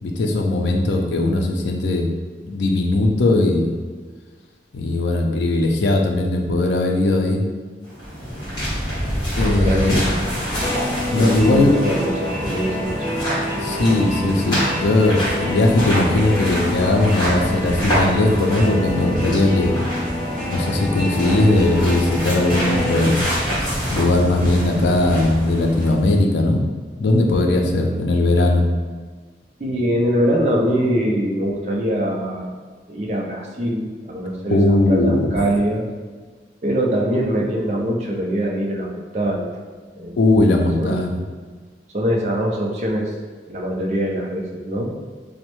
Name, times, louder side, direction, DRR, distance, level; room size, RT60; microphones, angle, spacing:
voice 1, 0.0-2.1 2.4-3.7 4.7-7.4 9.4-10.1 11.1-11.8 13.6-19.8 20.5-23.3 23.9-26.6 27.0-28.7 34.5-35.3 40.2-41.2, left 2 dB, 85° left, 2 dB, 0.4 m, -18 dB
sound 1, 7.8-26.1, equal, 25° left, 1.4 m, -26 dB
voice 2, 9.5-10.0 11.2-12.9 29.6-32.5 32.9-35.9 36.6-39.6 40.0-40.2 40.4-41.1 41.9-43.1 43.5-44.9, equal, 40° right, -1 dB, 0.4 m, -23 dB
sound 2, 10.5-23.0, left 1 dB, 5° right, 0.9 m, -28 dB
3.1 x 2.1 x 3.0 m, 1.5 s
head